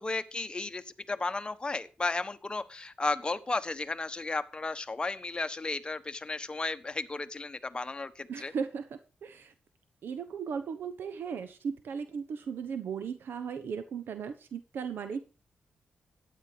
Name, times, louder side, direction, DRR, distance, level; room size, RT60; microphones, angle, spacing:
voice 1, 0.0-8.5, left 3 dB, 25° left, 9 dB, 1.2 m, -34 dB
voice 2, 8.3-9.5 10.0-15.2, right 6 dB, 75° right, 10 dB, 1.1 m, -37 dB
13.0 x 9.6 x 5.0 m, 0.34 s
cardioid pair, 90°, 4 cm